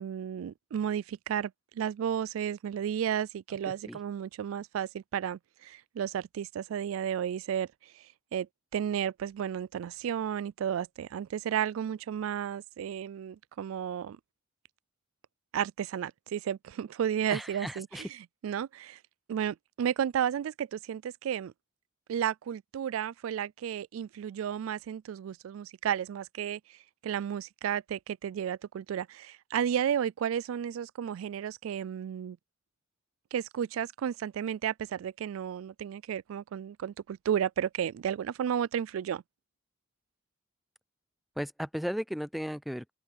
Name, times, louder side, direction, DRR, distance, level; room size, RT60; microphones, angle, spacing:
voice 1, 0.0-1.5 1.8-7.7 8.3-8.5 8.7-14.2 15.5-18.1 18.4-19.0 19.3-21.5 22.1-26.6 27.0-32.4 33.3-39.2, right 9 dB, 90° right, 0.3 m, -33 dB
voice 2, 17.3-18.1 41.4-42.9, equal, ahead, 0.3 m, -35 dB
open air
head